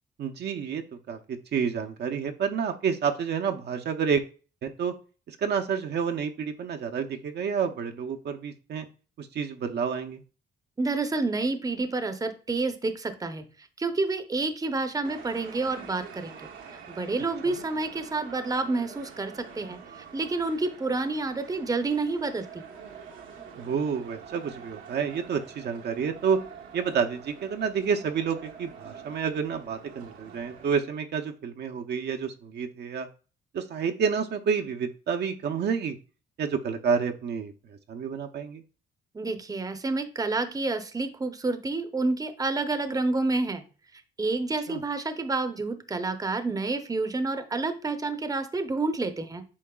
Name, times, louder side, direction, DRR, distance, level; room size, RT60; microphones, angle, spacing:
voice 1, 0.2-4.2 4.6-4.9 5.3-8.9 9.2-10.2 23.5-26.4 26.7-33.1 33.5-36.0 36.4-38.6 44.7-44.8, right 6 dB, 55° right, 4 dB, 0.7 m, -29 dB
voice 2, 10.8-13.4 13.8-16.4 16.9-19.8 20.1-22.6 39.1-43.6 44.2-49.4, right 3 dB, 20° right, 9 dB, 0.7 m, -29 dB
sound 1, 15.0-30.7, right 6 dB, 75° right, 1.1 m, -46 dB
8.6 x 5.2 x 2.3 m, 0.36 s
cardioid pair, 90°, 20 cm